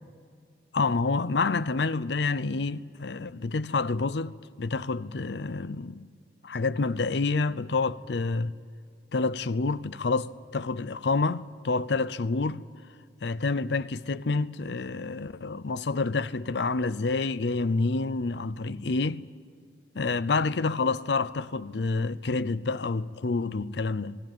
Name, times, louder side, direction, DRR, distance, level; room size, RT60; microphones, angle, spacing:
voice 1, 0.7-6.1 6.4-8.5 9.1-12.6 13.2-19.2 19.9-24.2, left 3 dB, 75° left, 0.6 m, -28 dB
19.0 x 18.0 x 9.2 m
head